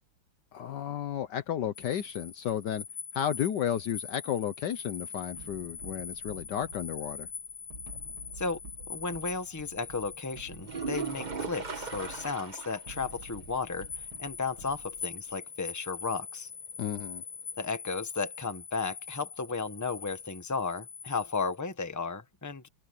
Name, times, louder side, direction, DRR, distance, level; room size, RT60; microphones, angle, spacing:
voice 1, 0.5-2.8 3.1-7.3 16.8-17.2, left 10 dB, 65° left, 1.3 m, -33 dB
sound 1, 1.7-21.6, left 5 dB, 40° left, 1.2 m, -43 dB
sound 2, 5.4-15.3, right 2 dB, 80° right, 5.2 m, -50 dB
voice 2, 8.9-16.5 17.6-22.7, left 4 dB, 10° left, 1.2 m, -34 dB
sound 3, 10.6-12.9 13.2-13.3 13.8-13.9 17.6-17.7, right 5 dB, 25° right, 1.2 m, -37 dB
omnidirectional pair, 2.2 m